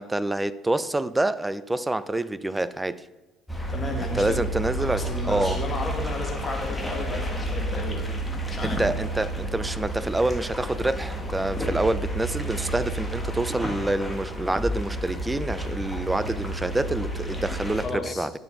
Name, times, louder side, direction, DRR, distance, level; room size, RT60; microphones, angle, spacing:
voice 1, 0.0-3.1 4.1-5.6 8.6-18.3, right 2 dB, 10° right, 15 dB, 0.5 m, -27 dB
sound 1, 3.5-17.9, right 1 dB, 10° left, 1.6 m, -31 dB
voice 2, 3.7-4.4 4.8-8.1 8.5-8.8 17.8-18.3, left 2 dB, 25° left, 1 dB, 2.0 m, -33 dB
9.9 x 6.6 x 3.9 m, 1.1 s
figure-of-eight pair, 55°, 0 cm